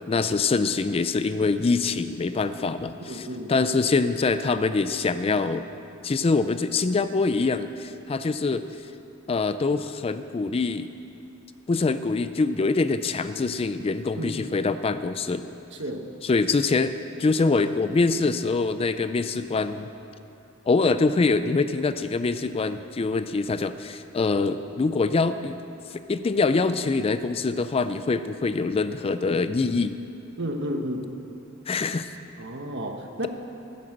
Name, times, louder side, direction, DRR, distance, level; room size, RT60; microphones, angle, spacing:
voice 1, 0.1-5.7 6.0-8.6 9.3-10.9 11.7-15.5 16.2-19.9 20.7-25.6 25.9-29.9 31.7-32.1, left 3 dB, 30° left, 12 dB, 0.4 m, -24 dB
voice 2, 3.1-3.5 14.2-14.4 15.8-16.0 30.4-31.0 32.4-33.3, equal, 60° right, 4 dB, 1.2 m, -31 dB
13.0 x 9.6 x 7.8 m, 2.8 s
head